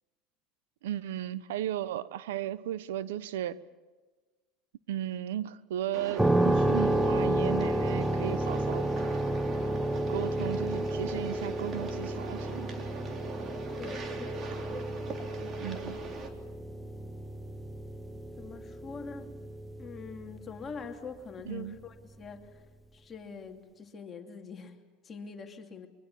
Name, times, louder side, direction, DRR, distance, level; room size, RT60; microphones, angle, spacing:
voice 1, 0.8-3.6 4.9-8.9 10.1-12.9 15.6-16.0 21.5-21.8, right 11 dB, 85° right, 17 dB, 0.9 m, -35 dB
sound 1, 5.9-16.3, right 4 dB, 40° right, 3.4 m, -42 dB
sound 2, 6.2-20.8, right 1 dB, 5° right, 1.2 m, -31 dB
voice 2, 13.8-14.7 15.2-15.3 18.4-19.3 19.8-22.7 22.9-25.9, left 5 dB, 30° left, 4 dB, 2.5 m, -44 dB
25.0 x 23.5 x 7.1 m, 1.3 s
supercardioid pair, 105°, 0 cm